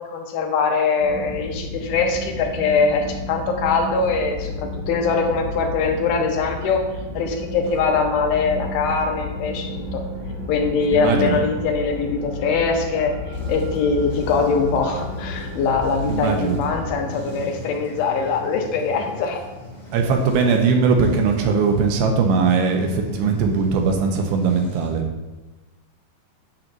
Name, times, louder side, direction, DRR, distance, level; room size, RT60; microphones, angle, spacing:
voice 1, 0.0-6.8 7.1-10.0 10.5-19.4, left 4 dB, 80° left, 3 dB, 2.7 m, -22 dB
sound 1, 1.0-16.9, left 2 dB, 45° right, 1.3 m, -32 dB
voice 2, 10.9-11.4 16.1-16.6 19.9-25.0, right 5 dB, 90° right, 3 dB, 2.8 m, -20 dB
sound 2, 13.3-25.0, left 1 dB, 30° left, 1.4 m, -39 dB
8.8 x 7.4 x 2.6 m, 1.1 s
omnidirectional pair, 4.3 m